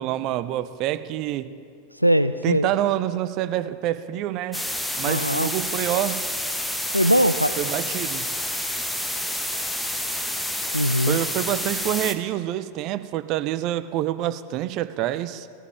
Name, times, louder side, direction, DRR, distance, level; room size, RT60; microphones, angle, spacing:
voice 1, 0.0-1.6 2.4-4.7 5.0-6.3 7.6-8.3 11.1-15.5, right 13 dB, 40° right, 0.5 m, -27 dB
voice 2, 2.0-2.7 5.0-5.5 6.9-7.6 10.7-11.2, equal, 90° left, 0.3 m, -20 dB
sound 1, 4.5-12.1, left 1 dB, 5° left, 0.9 m, -29 dB
18.5 x 14.0 x 3.4 m
figure-of-eight pair, 90°, 0 cm